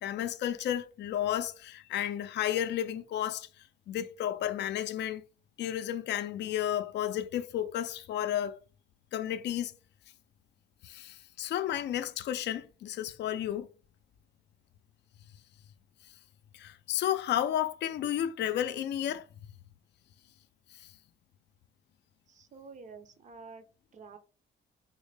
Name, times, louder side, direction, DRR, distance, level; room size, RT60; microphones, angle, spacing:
voice 1, 0.0-3.5 3.9-5.2 5.6-8.6 9.1-9.7 10.8-13.7 16.5-19.3, left 11 dB, 60° left, 0.4 m, -32 dB
voice 2, 22.3-23.6 23.9-24.2, right 4 dB, 40° right, 0.6 m, -49 dB
3.9 x 2.1 x 3.2 m
cardioid pair, 90°, 20 cm